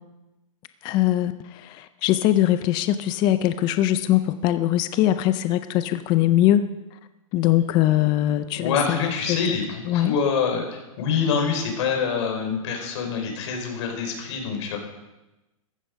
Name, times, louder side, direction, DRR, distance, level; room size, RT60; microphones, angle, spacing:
voice 1, 0.8-6.7 7.3-9.4 9.9-10.2, left 13 dB, 25° left, 12 dB, 0.4 m, -22 dB
voice 2, 8.5-14.8, left 6 dB, 55° left, 3 dB, 4.5 m, -26 dB
14.5 x 11.5 x 5.2 m, 1.0 s
hypercardioid pair, 150°, 18 cm